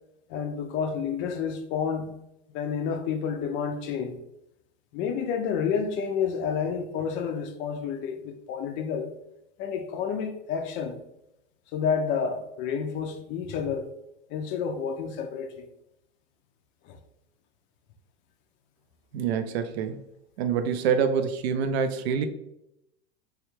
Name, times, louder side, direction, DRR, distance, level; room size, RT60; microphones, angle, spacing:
voice 1, 0.3-2.1 2.5-4.2 4.9-9.1 9.6-11.0 11.7-13.9 14.3-15.7 16.8-17.0, left 6 dB, 35° left, 0.4 m, -30 dB
voice 2, 19.1-20.0 20.4-22.3, right 7 dB, 70° right, 0.5 m, -26 dB
3.2 x 2.3 x 3.0 m
hypercardioid pair, 100°, 33 cm